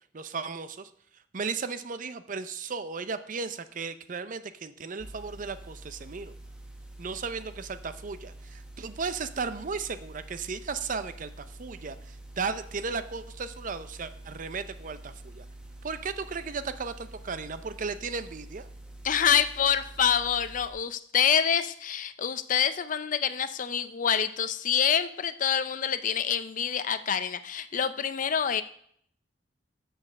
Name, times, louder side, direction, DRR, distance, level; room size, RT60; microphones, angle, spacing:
voice 1, 0.1-0.9 1.3-6.3 7.0-15.4 15.8-18.7, right 5 dB, 45° right, 12 dB, 0.5 m, -35 dB
sound 1, 5.0-20.7, right 1 dB, 5° right, 1.0 m, -46 dB
voice 2, 19.0-28.6, left 8 dB, 45° left, 12 dB, 0.5 m, -26 dB
7.3 x 6.4 x 6.5 m, 0.66 s
head